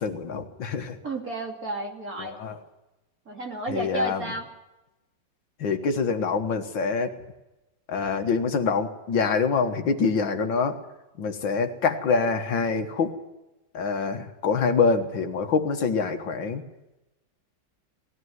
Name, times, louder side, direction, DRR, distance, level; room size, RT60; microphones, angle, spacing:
voice 1, 0.0-1.0 2.2-2.6 3.7-4.2 5.6-7.1 7.9-10.8 11.2-13.1 13.7-16.6, left 5 dB, 70° left, 6 dB, 2.1 m, -25 dB
voice 2, 1.0-2.4 3.3-4.5, right 1 dB, 45° right, 1 dB, 3.3 m, -31 dB
19.0 x 16.0 x 9.5 m, 1.0 s
omnidirectional pair, 2.1 m